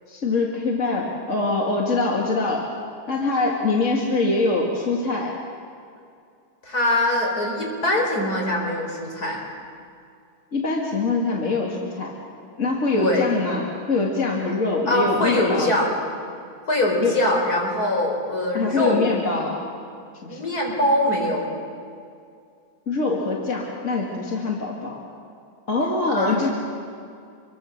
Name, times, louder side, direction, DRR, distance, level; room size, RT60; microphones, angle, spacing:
voice 1, 0.1-2.7 3.1-5.3 10.5-12.1 12.6-15.7 17.0-17.2 18.5-19.6 20.2-20.4 22.9-25.0 25.7-26.5, left 3 dB, 50° left, -1 dB, 2.5 m, -24 dB
voice 2, 6.6-9.4 12.9-13.3 14.9-15.9 16.7-19.1 20.3-21.5 26.1-26.5, left 1 dB, 75° left, 0 dB, 5.2 m, -23 dB
26.5 x 23.5 x 6.6 m, 2.4 s
omnidirectional pair, 1.6 m